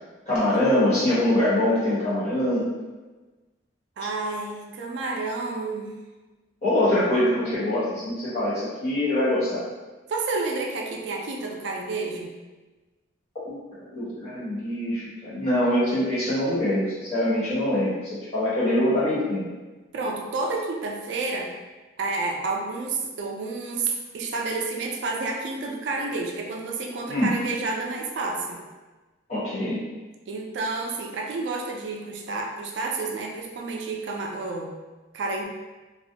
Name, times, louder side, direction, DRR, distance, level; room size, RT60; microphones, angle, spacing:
voice 1, 0.3-2.7 6.6-9.6 13.4-13.6 13.9-19.4 27.1-27.3 29.3-29.8, left 1 dB, 35° left, -11 dB, 1.1 m, -24 dB
voice 2, 4.0-6.0 10.1-12.4 19.9-21.5 22.0-28.6 30.3-34.7 35.1-35.4, right 3 dB, 70° right, 0 dB, 0.3 m, -30 dB
2.3 x 2.1 x 2.7 m, 1.2 s
head